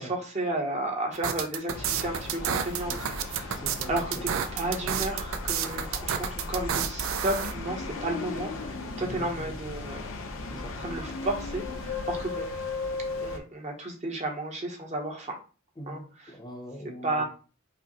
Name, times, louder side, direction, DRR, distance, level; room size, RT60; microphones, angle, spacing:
voice 1, 0.0-2.9 3.2-3.6 3.9-4.2 4.5-10.1 10.8-12.5 13.2-15.4 15.9-16.0 17.0-17.2, right 2 dB, 35° right, 1 dB, 0.8 m, -32 dB
sound 1, 1.1-7.5, right 8 dB, 80° right, 0.4 m, -30 dB
sound 2, 1.7-13.4, left 3 dB, 75° left, 0.6 m, -36 dB
voice 2, 3.5-4.3 9.0-9.6 10.4-10.8 15.8-17.2, equal, 20° left, 2 dB, 0.6 m, -42 dB
4.9 x 2.0 x 2.9 m, 0.35 s
head